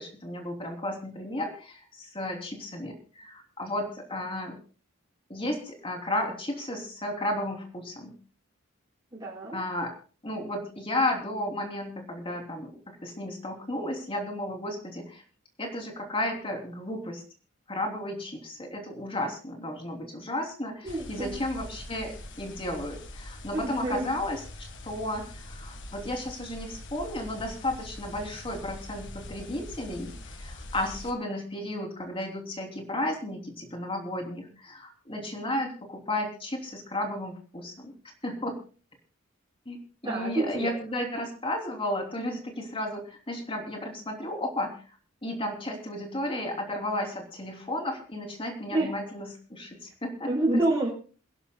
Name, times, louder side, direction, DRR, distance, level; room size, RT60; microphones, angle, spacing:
voice 1, 0.0-4.6 5.3-8.1 9.5-9.9 10.2-15.2 15.6-17.2 17.7-37.9 38.2-38.6 39.6-44.8 45.2-50.6, left 1 dB, 25° left, 2 dB, 3.2 m, -33 dB
voice 2, 9.1-9.6 20.8-21.4 23.5-24.1 40.0-40.7 48.7-48.9 50.3-50.9, right 2 dB, 20° right, -9 dB, 4.6 m, -28 dB
sound 1, 20.9-31.1, left 1 dB, 60° left, 1.6 m, -43 dB
28.5 x 11.0 x 2.3 m, 0.38 s
head